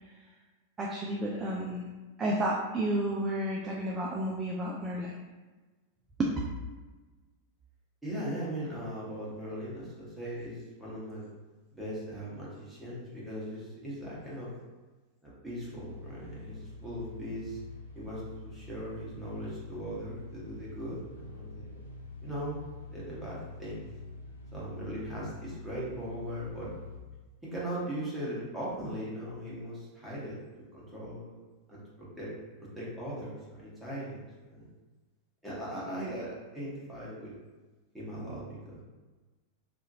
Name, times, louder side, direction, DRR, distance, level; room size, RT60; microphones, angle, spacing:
voice 1, 0.8-1.8 2.2-5.1 6.2-6.3, right 1 dB, 20° right, -3 dB, 0.4 m, -31 dB
voice 2, 8.0-11.2 11.7-14.5 15.2-17.6 17.9-21.8 22.2-22.6 22.9-23.8 24.5-26.7 27.4-30.4 30.7-31.4 31.7-32.3 32.7-34.6 35.4-37.3 37.9-38.8, equal, ahead, -8 dB, 1.1 m, -39 dB
sound 1, 15.6-27.0, left 3 dB, 75° left, 0.4 m, -46 dB
2.7 x 2.5 x 2.7 m, 1.2 s
figure-of-eight pair, 90°, 0 cm